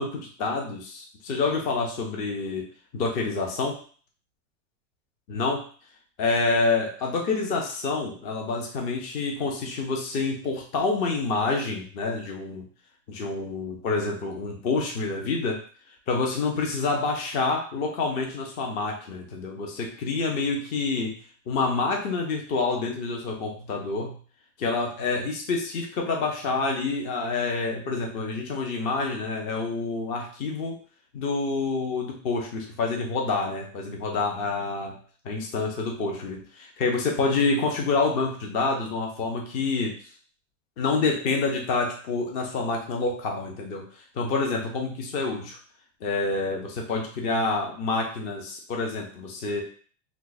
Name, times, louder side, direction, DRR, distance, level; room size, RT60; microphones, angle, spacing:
voice 1, 0.0-2.6 2.9-3.8 5.3-5.6 6.2-12.6 13.1-15.6 16.1-21.1 21.5-24.2 24.6-30.8 31.1-34.9 35.2-39.9 40.8-43.8 44.2-45.6 46.0-49.6, left 3 dB, 20° left, 1 dB, 0.3 m, -27 dB
2.7 x 2.3 x 3.9 m, 0.43 s
supercardioid pair, 150°, 39 cm